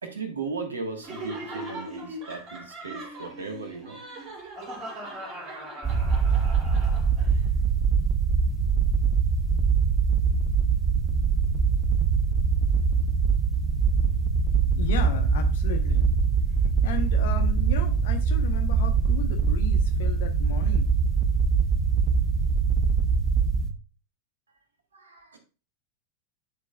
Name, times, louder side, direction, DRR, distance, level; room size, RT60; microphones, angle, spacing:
voice 1, 0.0-4.0 24.9-25.4, right 4 dB, 70° right, 5 dB, 1.5 m, -36 dB
Laughter, 1.0-7.4, right 1 dB, 35° right, 2.7 m, -39 dB
sound 1, 5.8-23.7, right 5 dB, 20° right, 0.8 m, -23 dB
voice 2, 14.7-16.1 16.8-20.9, left 6 dB, 55° left, 6 dB, 1.0 m, -35 dB
10.5 x 4.6 x 2.3 m, 0.33 s
figure-of-eight pair, 90°, 0 cm